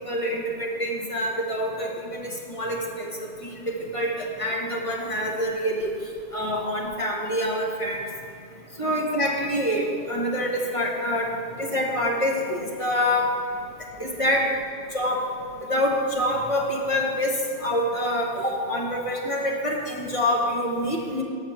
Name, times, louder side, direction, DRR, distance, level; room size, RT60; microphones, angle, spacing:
voice 1, 0.0-5.9 6.3-8.0 8.8-11.3 11.6-13.3 14.0-14.5 14.9-15.2 15.6-21.2, equal, 30° left, -1 dB, 1.0 m, -26 dB
6.1 x 6.0 x 6.8 m, 2.3 s
omnidirectional pair, 1.1 m